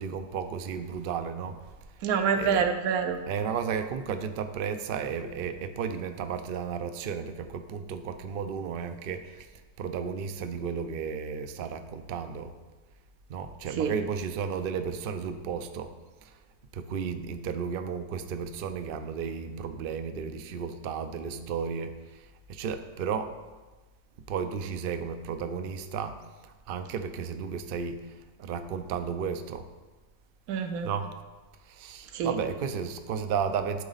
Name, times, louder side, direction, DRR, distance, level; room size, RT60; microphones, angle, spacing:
voice 1, 0.0-1.9 2.3-2.7 3.3-9.5 9.8-12.6 13.3-15.9 16.2-16.4 16.7-23.3 24.3-29.7 30.8-31.2 31.6-33.8, right 6 dB, 65° right, 8 dB, 0.5 m, -33 dB
voice 2, 2.0-3.2 13.8-13.9 30.5-30.9 32.1-32.3, right 6 dB, 80° right, 7 dB, 1.1 m, -26 dB
11.5 x 4.0 x 4.0 m, 1.2 s
omnidirectional pair, 1.5 m